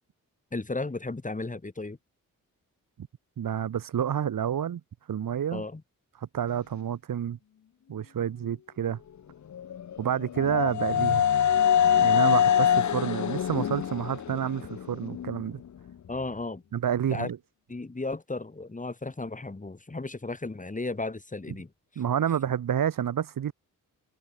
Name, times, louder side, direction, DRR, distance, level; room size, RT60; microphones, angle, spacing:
voice 1, 0.5-2.0 5.5-5.8 16.1-16.6 17.1-17.3 17.7-21.7, left 3 dB, 25° left, 3.5 m, -34 dB
voice 2, 3.4-4.8 5.1-5.6 6.2-7.4 7.9-9.0 10.0-11.3 12.0-15.6 16.7-17.4 21.9-23.5, right 9 dB, 75° right, 1.6 m, -29 dB
sound 1, 9.5-15.4, left 9 dB, 55° left, 0.9 m, -24 dB
cardioid pair, 90°, 34 cm